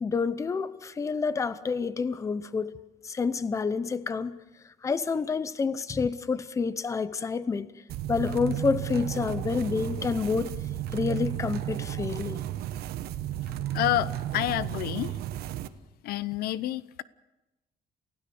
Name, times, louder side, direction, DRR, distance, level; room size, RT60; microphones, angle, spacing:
voice 1, 0.0-2.8 3.0-4.4 4.8-7.7 8.1-10.5 10.9-12.4, left 5 dB, 20° left, 0.7 m, -28 dB
sound 1, 7.9-15.7, right 12 dB, 80° right, 1.1 m, -33 dB
voice 2, 13.7-15.1 16.0-17.0, left 14 dB, 80° left, 0.8 m, -29 dB
29.0 x 16.5 x 6.9 m
cardioid pair, 160°, 16 cm